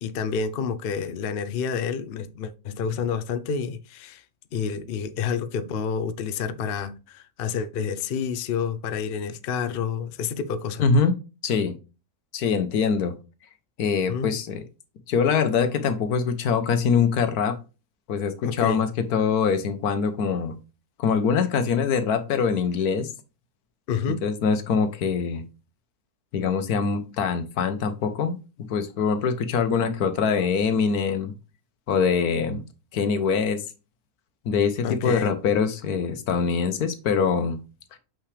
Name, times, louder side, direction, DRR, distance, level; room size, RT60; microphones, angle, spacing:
voice 1, 0.0-4.2 4.5-10.8 14.1-14.3 18.4-18.8 23.9-24.3 34.8-35.4, left 6 dB, 55° left, 0.7 m, -29 dB
voice 2, 10.8-11.1 11.4-11.7 12.3-13.1 13.8-14.6 15.1-17.6 18.1-20.5 21.0-23.1 24.1-25.4 26.3-28.4 28.7-31.3 31.9-32.6 32.9-33.6 34.4-37.6, left 6 dB, 80° left, 1.4 m, -23 dB
7.1 x 5.8 x 3.3 m
omnidirectional pair, 1.6 m